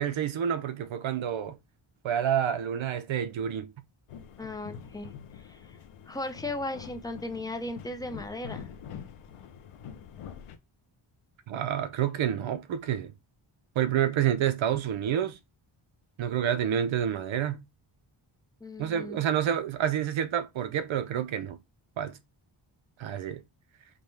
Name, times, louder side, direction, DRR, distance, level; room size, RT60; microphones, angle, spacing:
voice 1, 0.0-1.6 2.0-3.7 11.5-13.1 13.8-15.4 16.2-17.6 18.8-21.6 22.0-22.2 23.0-23.4, right 9 dB, 70° right, 0.6 m, -28 dB
sound 1, 4.1-10.6, left 8 dB, 90° left, 0.7 m, -45 dB
voice 2, 4.4-5.8 6.1-8.6 18.6-19.2, left 2 dB, 10° left, 0.4 m, -37 dB
5.1 x 2.1 x 3.2 m
wide cardioid pair, 125°, 50 cm